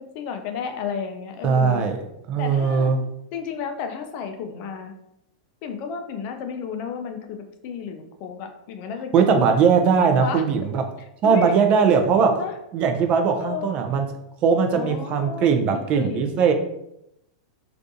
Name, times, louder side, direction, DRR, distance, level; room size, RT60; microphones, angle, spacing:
voice 1, 0.1-1.8 2.4-2.9 3.3-4.9 5.6-9.5 10.2-10.5 11.2-11.5 12.2-12.5 13.4-13.7 14.7-16.4, left 6 dB, 50° left, 5 dB, 0.4 m, -32 dB
voice 2, 1.4-3.0 9.1-10.8 11.2-12.4 12.7-14.1 14.4-16.5, right 6 dB, 35° right, 5 dB, 0.4 m, -20 dB
2.5 x 2.3 x 2.6 m, 0.80 s
hypercardioid pair, 120°, 4 cm